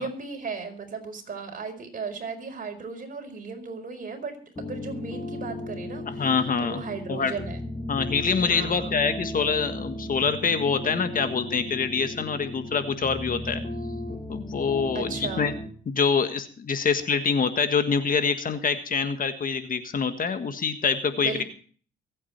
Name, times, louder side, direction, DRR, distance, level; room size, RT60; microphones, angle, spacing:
voice 1, 0.0-6.3 6.6-7.6 8.5-8.9 14.9-15.6 21.1-21.4, right 4 dB, 45° right, 4 dB, 4.8 m, -36 dB
sound 1, 4.6-15.7, left 1 dB, 25° left, 4.5 m, -36 dB
voice 2, 6.0-6.8 7.1-7.3 7.9-13.6 14.3-15.5 15.9-21.4, left 5 dB, 45° left, 9 dB, 1.6 m, -25 dB
23.0 x 8.8 x 4.4 m, 0.43 s
cardioid pair, 90°, 20 cm